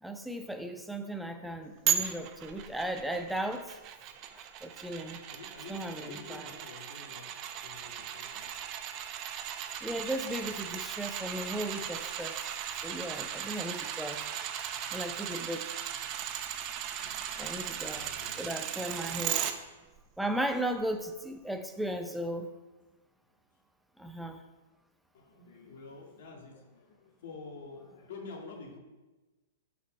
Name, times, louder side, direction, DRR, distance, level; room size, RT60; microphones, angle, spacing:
voice 1, 0.0-3.8 4.3-5.2 5.7-6.5 9.8-12.5 12.8-14.2 14.9-15.8 17.4-18.1 18.4-19.4 20.2-22.5 24.0-24.4, right 1 dB, ahead, 6 dB, 0.6 m, -36 dB
sound 1, 1.9-19.5 20.0-20.1, right 10 dB, 40° right, 0.7 m, -37 dB
voice 2, 5.3-8.8 16.9-17.6 17.9-18.5 25.1-28.8, left 4 dB, 65° left, 0 dB, 2.0 m, -49 dB
6.7 x 5.2 x 5.4 m, 1.1 s
hypercardioid pair, 115°, 0 cm